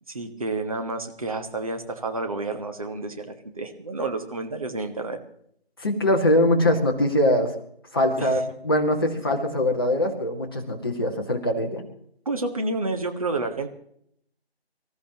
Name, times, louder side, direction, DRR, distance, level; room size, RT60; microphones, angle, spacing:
voice 1, 0.1-5.2 8.2-8.4 9.3-9.4 12.2-13.7, right 3 dB, 35° right, 5 dB, 1.5 m, -30 dB
voice 2, 5.8-7.6 7.9-11.8, left 1 dB, 20° left, 0 dB, 1.7 m, -22 dB
25.0 x 14.0 x 3.0 m, 0.69 s
figure-of-eight pair, 160°, 32 cm